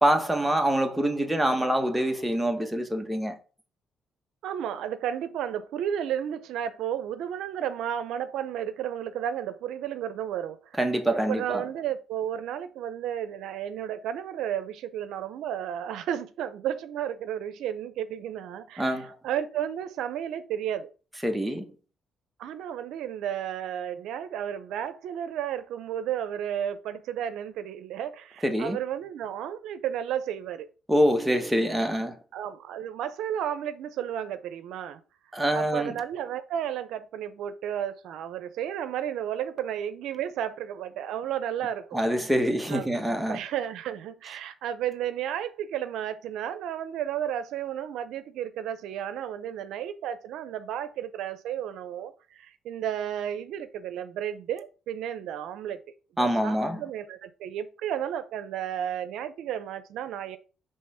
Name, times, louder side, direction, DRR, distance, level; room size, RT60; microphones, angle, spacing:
voice 1, 0.0-3.4 10.8-11.6 18.8-19.1 21.2-21.6 28.4-28.8 30.9-32.2 35.3-35.9 41.9-43.4 56.2-56.8, right 1 dB, 5° right, 1.3 m, -25 dB
voice 2, 4.4-10.7 11.1-20.9 22.4-30.7 32.3-35.0 35.5-42.0 42.7-42.9 43.3-55.8 56.2-60.4, right 10 dB, 85° right, 0.6 m, -33 dB
5.6 x 3.3 x 5.5 m
cardioid pair, 90°, 0 cm